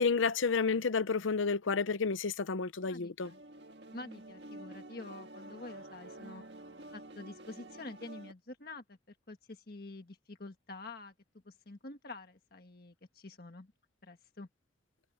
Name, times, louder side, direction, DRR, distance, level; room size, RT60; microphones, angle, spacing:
voice 1, 0.0-3.3, left 5 dB, 85° left, 0.7 m, -30 dB
voice 2, 2.9-3.4 3.9-6.4 6.9-11.1 11.4-13.7 14.0-14.5, left 2 dB, 50° left, 1.6 m, -48 dB
sound 1, 3.2-8.3, right 1 dB, 60° right, 1.8 m, -49 dB
head